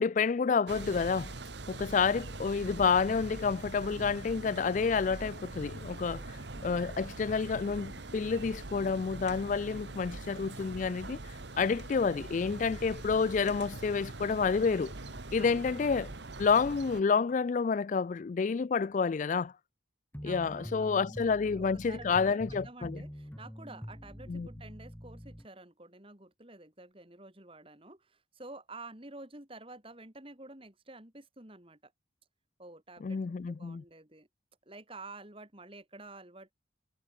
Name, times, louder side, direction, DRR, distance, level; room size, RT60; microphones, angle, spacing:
voice 1, 0.0-1.3 1.7-11.2 11.6-14.9 15.3-16.1 16.4-19.5 20.2-23.0 24.3-24.5 33.0-33.8, left 5 dB, 40° left, 0.3 m, -29 dB
sound 1, 0.7-17.0, right 2 dB, 60° right, 1.4 m, -43 dB
sound 2, 2.1-16.6, left 2 dB, 90° left, 2.4 m, -61 dB
voice 2, 15.3-16.0 20.2-31.9 32.6-34.3 34.7-36.5, right 2 dB, 30° right, 2.7 m, -50 dB
sound 3, 20.1-25.5, equal, 10° left, 2.5 m, -45 dB
head